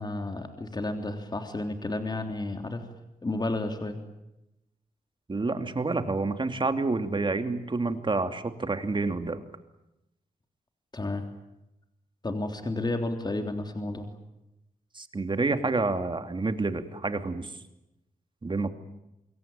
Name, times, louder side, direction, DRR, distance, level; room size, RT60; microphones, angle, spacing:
voice 1, 0.0-2.8 3.2-4.0 10.9-11.3 12.2-14.1, left 2 dB, 30° left, 6 dB, 3.4 m, -31 dB
voice 2, 5.3-9.4 14.9-17.5 18.4-18.7, right 3 dB, 35° right, 8 dB, 2.8 m, -28 dB
27.0 x 22.5 x 9.1 m, 0.89 s
wide cardioid pair, 95°, 14 cm